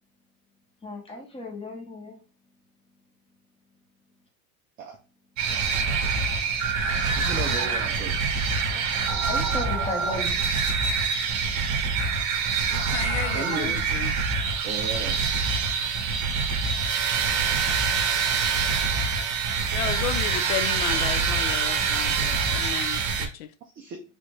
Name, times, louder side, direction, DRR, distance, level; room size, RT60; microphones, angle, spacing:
voice 1, 0.8-2.1 9.3-10.4, left 2 dB, 15° left, 1.0 m, -35 dB
sound 1, 5.4-23.3, right 5 dB, 40° right, 0.9 m, -25 dB
voice 2, 7.2-8.2 13.3-13.8 14.6-15.2 23.8-24.0, right 5 dB, 20° right, 0.4 m, -34 dB
voice 3, 12.7-14.1 19.7-23.5, left 10 dB, 65° left, 0.6 m, -33 dB
3.4 x 2.5 x 3.1 m
supercardioid pair, 120°, 43 cm